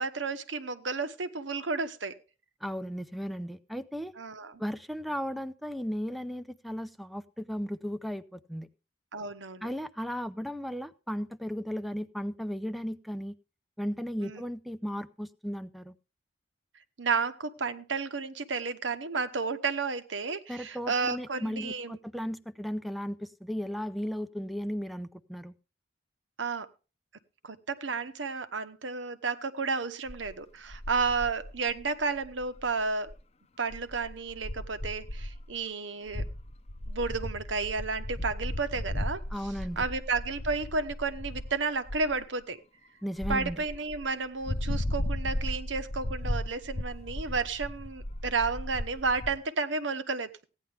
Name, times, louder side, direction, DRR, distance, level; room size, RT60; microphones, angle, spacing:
voice 1, 0.0-2.1 4.2-4.6 9.1-9.7 14.2-14.4 17.0-22.0 26.4-26.7 27.4-33.1 33.6-36.3 36.9-39.2 39.8-42.6 43.3-50.5, right 4 dB, 85° right, 10 dB, 1.1 m, -32 dB
voice 2, 2.6-4.1 4.6-8.7 9.6-13.3 13.8-15.9 20.5-25.5 39.3-39.8 43.0-43.6, equal, ahead, 11 dB, 0.6 m, -35 dB
sound 1, 30.1-30.3 30.7-32.8 33.1-33.2 33.7-35.5 36.1-41.6 41.9-42.2 43.2-44.1 44.4-49.4, left 1 dB, 35° left, 0.7 m, -36 dB
16.0 x 10.0 x 3.4 m, 0.32 s
head